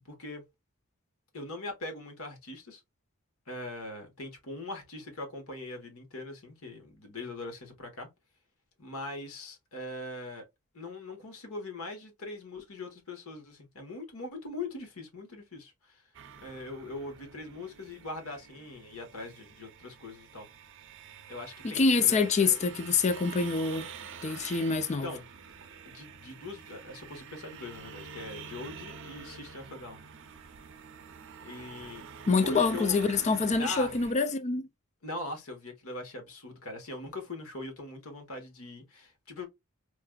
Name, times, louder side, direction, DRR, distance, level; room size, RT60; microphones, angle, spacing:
voice 1, 0.0-0.4 1.3-2.8 3.5-8.1 8.8-10.4 10.7-16.0 16.4-20.5 21.3-22.6 24.9-25.2 25.8-30.0 31.4-32.0 32.4-33.0 33.6-33.9 35.0-39.5, left 2 dB, 65° left, 1.2 m, -41 dB
sound 1, 16.1-34.1, right 6 dB, 60° right, 0.6 m, -48 dB
voice 2, 21.6-23.9 24.2-25.1 32.3-34.6, left 4 dB, 30° left, 0.4 m, -26 dB
4.8 x 2.5 x 2.3 m
head